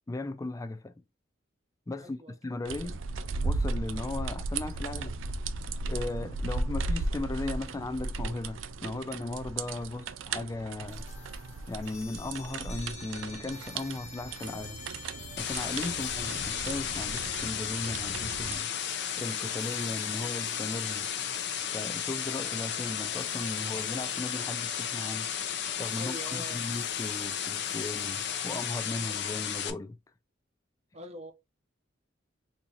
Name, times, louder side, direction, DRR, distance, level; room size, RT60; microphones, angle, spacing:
voice 1, 0.1-0.9 1.9-2.2 2.4-3.0 3.4-5.2 5.9-11.1 11.7-14.8 15.4-18.7 19.2-21.1 21.7-25.3 25.8-30.0, left 2 dB, 15° left, 0.3 m, -37 dB
voice 2, 2.0-2.8 26.0-26.6 30.9-31.3, equal, 35° right, 0.8 m, -45 dB
sound 1, 2.6-18.6, right 3 dB, 85° right, 0.5 m, -36 dB
sound 2, 10.9-28.7, left 4 dB, 35° left, 1.0 m, -50 dB
sound 3, 15.4-29.7, left 9 dB, 60° left, 0.6 m, -34 dB
4.1 x 2.8 x 2.5 m
head